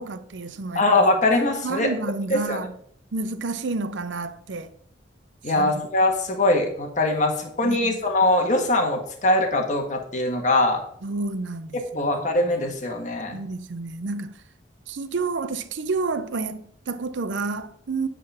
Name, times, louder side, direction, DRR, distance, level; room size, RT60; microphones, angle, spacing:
voice 1, 0.0-0.8 1.6-2.7 3.1-4.7 5.5-5.9 7.6-8.0 11.0-12.3 13.3-14.4 14.9-18.1, right 3 dB, 80° right, 0.6 m, -30 dB
voice 2, 0.7-1.9 2.3-2.6 5.4-10.8 11.9-13.4, left 2 dB, 45° left, 1.5 m, -22 dB
9.7 x 3.8 x 5.6 m
head